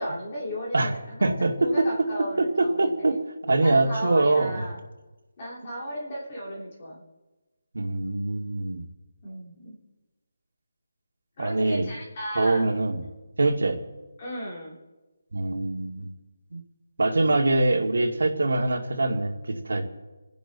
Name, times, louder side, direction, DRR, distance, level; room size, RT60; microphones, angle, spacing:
voice 1, 0.0-1.3 1.6-3.2 3.6-4.8 5.4-7.0 9.2-9.8 11.4-12.7 14.2-14.7, equal, 20° left, -4 dB, 3.0 m, -35 dB
voice 2, 1.2-2.1 2.4-3.2 3.5-4.6 7.7-8.9 11.4-11.9 12.4-13.0 13.4-13.8 15.3-16.1 16.5-16.6 17.0-19.8, right 2 dB, 80° right, 2 dB, 2.3 m, -23 dB
29.0 x 10.5 x 4.1 m, 1.2 s
hypercardioid pair, 180°, 0 cm